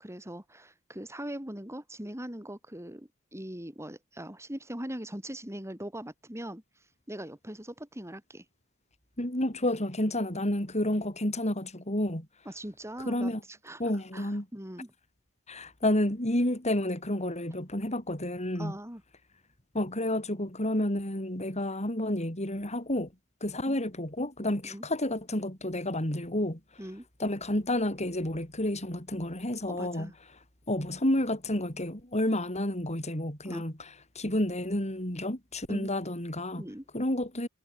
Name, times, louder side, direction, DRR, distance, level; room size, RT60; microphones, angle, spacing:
voice 1, 0.0-6.6 7.1-8.5 12.5-13.8 14.1-14.9 18.6-19.0 23.7-23.8 24.6-24.8 26.8-27.1 29.7-30.1 33.5-33.6 35.7-35.9 36.6-36.8, right 1 dB, 15° right, 5.2 m, -41 dB
voice 2, 9.2-12.3 13.0-13.4 13.8-14.5 15.5-18.8 19.7-23.1 23.4-26.6 27.2-30.1 30.7-33.9 34.1-36.6 36.9-37.5, left 1 dB, 35° left, 6.8 m, -30 dB
head